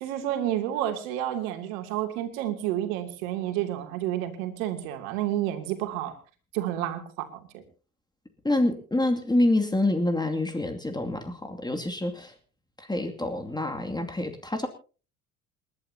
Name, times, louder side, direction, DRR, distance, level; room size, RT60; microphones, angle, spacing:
voice 1, 0.0-6.1 6.5-7.6, right 12 dB, 65° right, 7 dB, 2.8 m, -30 dB
voice 2, 8.4-12.3 12.8-14.7, left 1 dB, 10° left, 5 dB, 2.5 m, -27 dB
28.5 x 11.5 x 2.8 m, 0.36 s
figure-of-eight pair, 60°, 44 cm